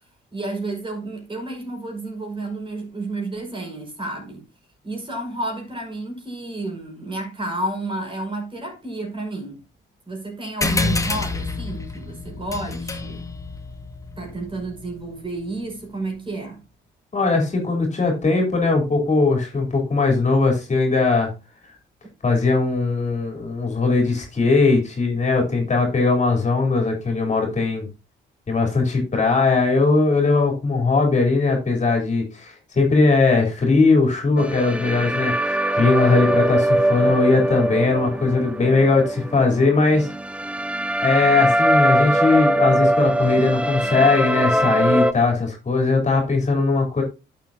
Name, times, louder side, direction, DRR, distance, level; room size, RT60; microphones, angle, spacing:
voice 1, 0.3-4.4 4.8-9.6 10.1-13.3 14.2-16.6, right 2 dB, 25° right, 5.5 m, -31 dB
sound 1, 10.6-15.5, left 3 dB, 15° left, 1.9 m, -28 dB
voice 2, 17.1-21.3 22.2-27.9 28.5-40.1 41.0-47.0, left 3 dB, 35° left, 3.6 m, -19 dB
sound 2, 34.4-45.1, right 1 dB, 5° right, 0.6 m, -22 dB
11.0 x 7.6 x 2.8 m
cardioid pair, 90°, 20 cm